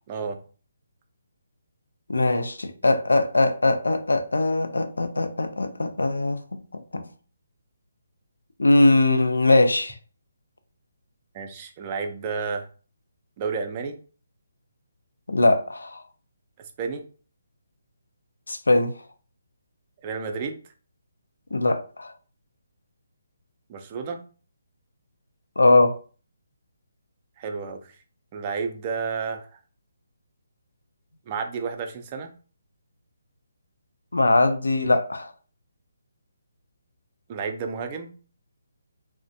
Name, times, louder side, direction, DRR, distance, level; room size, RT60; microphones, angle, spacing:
voice 1, 0.1-0.4 11.3-12.7 13.4-14.0 16.8-17.0 20.0-20.7 23.7-24.2 27.4-28.0 28.3-29.6 31.3-32.3 37.3-38.1, right 5 dB, 30° right, 0.4 m, -31 dB
voice 2, 2.1-6.4 6.7-7.1 8.6-10.0 15.3-16.0 18.5-18.9 21.5-22.1 25.6-25.9 34.1-35.3, left 2 dB, 90° left, 0.4 m, -21 dB
2.4 x 2.1 x 2.6 m
hypercardioid pair, 155°, 0 cm